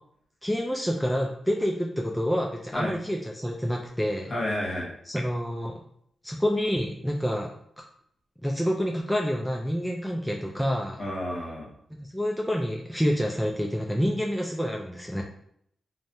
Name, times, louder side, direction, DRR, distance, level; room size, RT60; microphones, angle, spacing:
voice 1, 0.4-4.3 5.1-5.8 6.2-7.8 8.4-11.0 12.1-15.2, equal, ahead, -1 dB, 0.4 m, -28 dB
voice 2, 4.3-4.9 11.0-11.7, left 1 dB, 45° left, -3 dB, 1.1 m, -30 dB
3.2 x 2.1 x 2.7 m, 0.69 s
cardioid pair, 70°, 0 cm